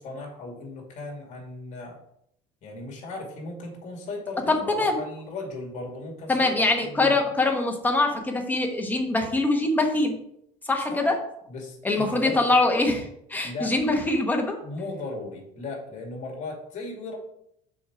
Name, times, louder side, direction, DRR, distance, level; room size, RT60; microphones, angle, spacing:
voice 1, 0.0-2.0 2.6-6.5 6.8-7.2 10.9-11.1 11.5-12.6 13.4-13.8 14.6-17.2, left 2 dB, 45° left, 0 dB, 2.5 m, -37 dB
voice 2, 4.5-5.0 6.3-10.1 10.7-11.1 11.8-14.6, left 2 dB, 10° left, 2 dB, 1.2 m, -23 dB
6.2 x 4.7 x 4.9 m, 0.73 s
cardioid pair, 135°, 16 cm